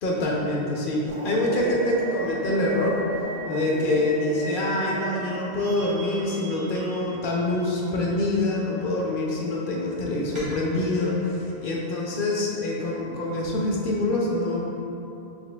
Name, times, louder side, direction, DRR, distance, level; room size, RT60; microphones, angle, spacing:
voice 1, 0.0-3.0 3.4-14.6, left 2 dB, 65° left, -3 dB, 0.7 m, -25 dB
sound 1, 1.1-7.0, right 3 dB, 70° right, 0.8 m, -37 dB
sound 2, 1.4-5.1 5.6-7.8 10.3-11.4, right 2 dB, 30° right, 0.8 m, -38 dB
4.2 x 2.9 x 2.2 m, 2.9 s
omnidirectional pair, 1.1 m